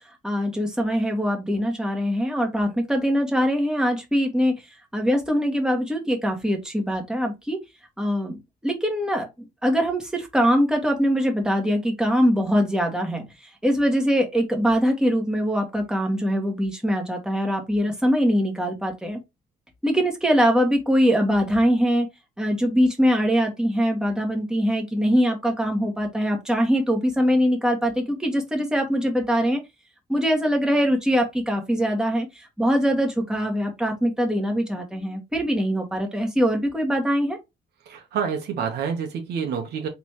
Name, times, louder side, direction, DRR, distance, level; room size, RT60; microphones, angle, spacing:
voice 1, 0.2-4.5 4.9-7.6 8.0-8.4 8.6-19.2 19.8-22.1 22.4-29.6 30.1-37.4, equal, 5° right, 1.6 m, -22 dB
voice 2, 37.9-39.9, right 7 dB, 75° right, 1.4 m, -28 dB
4.0 x 3.5 x 3.1 m
cardioid pair, 100°, 17 cm